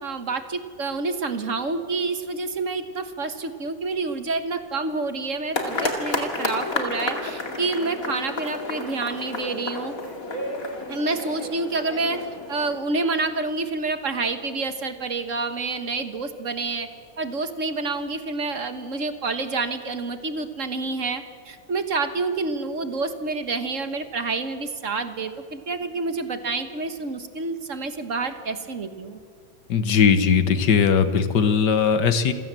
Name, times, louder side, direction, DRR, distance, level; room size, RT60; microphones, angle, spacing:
voice 1, 0.0-9.9 10.9-12.2 12.5-16.9 17.2-29.2, right 3 dB, 50° right, 9 dB, 1.6 m, -28 dB
sound 1, 5.5-12.8, left 2 dB, 55° left, 2.8 m, -31 dB
voice 2, 29.7-32.3, left 6 dB, 80° left, 11 dB, 1.8 m, -19 dB
27.5 x 16.0 x 7.6 m, 2.2 s
omnidirectional pair, 1.8 m